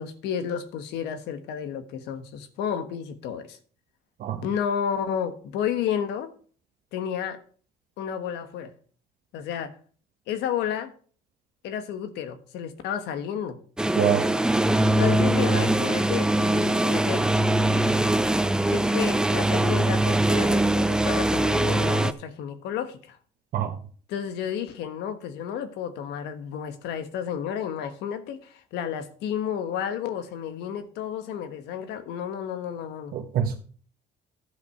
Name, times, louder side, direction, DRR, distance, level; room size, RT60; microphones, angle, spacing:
voice 1, 0.0-3.6 4.4-6.3 6.9-7.4 8.0-8.7 9.3-9.7 10.3-10.9 11.6-13.6 15.0-17.4 18.7-23.2 24.1-33.1, left 8 dB, 85° left, 1.3 m, -31 dB
sound 1, 13.8-22.1, right 1 dB, 5° right, 0.5 m, -22 dB
voice 2, 14.0-14.3 15.0-15.1 15.6-15.7 23.5-23.8 33.1-33.5, right 8 dB, 60° right, 1.1 m, -25 dB
12.0 x 5.4 x 5.8 m
cardioid pair, 110°, 17 cm